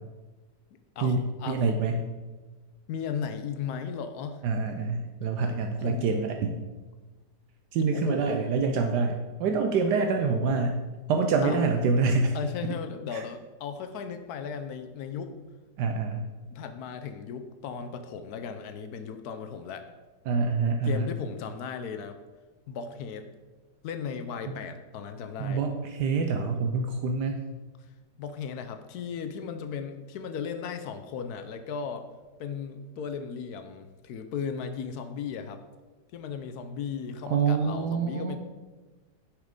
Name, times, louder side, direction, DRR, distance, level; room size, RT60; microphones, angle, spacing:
voice 1, 1.0-1.7 2.9-4.4 5.8-6.2 7.9-8.4 11.4-11.7 12.3-15.3 16.5-19.9 20.8-22.2 22.7-23.3 23.8-25.6 28.2-32.1 32.4-35.6 36.1-38.4, left 6 dB, 70° left, 8 dB, 1.0 m, -36 dB
voice 2, 1.5-2.1 4.4-6.6 7.7-10.8 11.1-12.4 13.1-13.2 15.8-16.3 20.3-21.1 25.4-27.4 37.3-38.4, right 4 dB, 75° right, 4 dB, 1.1 m, -26 dB
6.6 x 4.8 x 5.1 m, 1.2 s
omnidirectional pair, 1.9 m